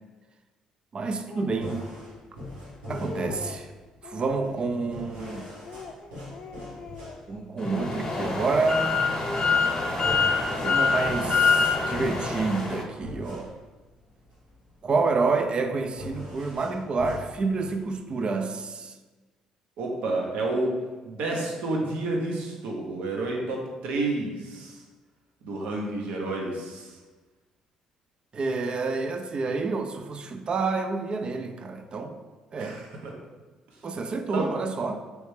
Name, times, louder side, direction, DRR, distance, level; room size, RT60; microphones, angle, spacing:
voice 1, 0.9-1.8 2.9-3.7 4.0-5.5 7.3-9.0 10.6-13.5 14.8-19.0 28.3-32.2 32.5-32.8 33.8-35.0, right 3 dB, 45° right, 7 dB, 0.4 m, -28 dB
Speech, 1.3-1.6 2.3-2.4 2.7-3.6 4.0-4.6 5.1-7.4 7.7-8.6 9.1-10.1 10.4-11.1 11.4-12.6, left 3 dB, 50° left, 0.4 m, -42 dB
sound 1, 1.5-18.0, left 1 dB, 90° right, 1.3 m, -42 dB
sound 2, 7.6-12.8, left 4 dB, 30° left, 0.9 m, -25 dB
voice 2, 19.8-20.8 21.0-24.8 25.4-27.0 32.6-33.2 33.7-33.8 34.3-34.5, right 2 dB, 75° right, 0 dB, 0.7 m, -30 dB
3.2 x 3.1 x 3.2 m, 1.3 s
supercardioid pair, 65°, 2 cm